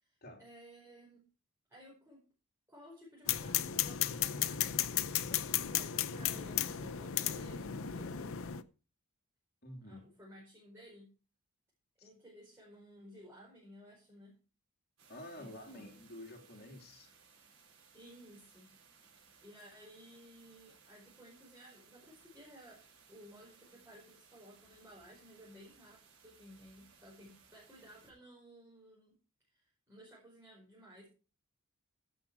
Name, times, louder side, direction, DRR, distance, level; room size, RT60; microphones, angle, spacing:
voice 1, 0.0-1.2 1.7-2.2 2.7-8.4 9.8-11.1 12.0-14.4 15.4-15.9 17.9-18.7 19.4-22.8 23.1-29.1 29.5-31.1, equal, 10° right, 4.9 m, -56 dB
sound 1, 3.3-8.6, left 11 dB, 60° left, 0.7 m, -34 dB
voice 2, 9.6-10.0 12.0-12.1 15.1-17.1, left 1 dB, 45° left, 3.1 m, -50 dB
sound 2, 15.0-28.1, right 6 dB, 65° right, 5.7 m, -63 dB
16.0 x 7.1 x 4.8 m
head